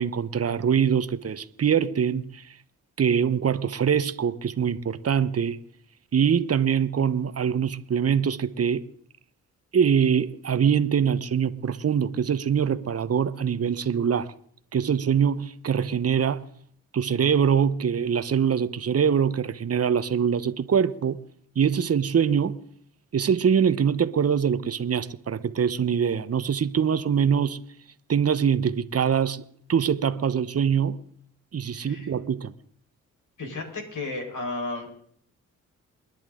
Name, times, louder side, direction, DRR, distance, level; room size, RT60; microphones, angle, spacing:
voice 1, 0.0-2.6 3.0-5.6 6.1-8.8 9.7-14.3 14.7-16.4 16.9-21.2 21.5-22.6 23.1-27.6 28.1-29.4 29.7-31.0 31.5-32.5, right 7 dB, 40° right, 1.1 m, -23 dB
voice 2, 31.7-32.1 33.4-34.9, left 2 dB, 60° left, 4.9 m, -33 dB
29.0 x 10.5 x 3.8 m
hypercardioid pair, 40°, 36 cm